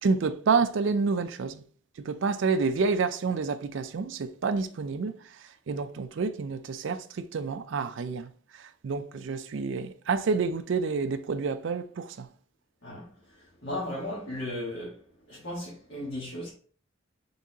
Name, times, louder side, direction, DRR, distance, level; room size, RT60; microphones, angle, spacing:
voice 1, 0.0-1.6 2.0-5.4 5.7-12.3, right 4 dB, 65° right, 0.4 m, -29 dB
voice 2, 13.6-15.0 15.3-16.5, left 1 dB, 60° left, 1.5 m, -35 dB
4.0 x 3.6 x 2.8 m
head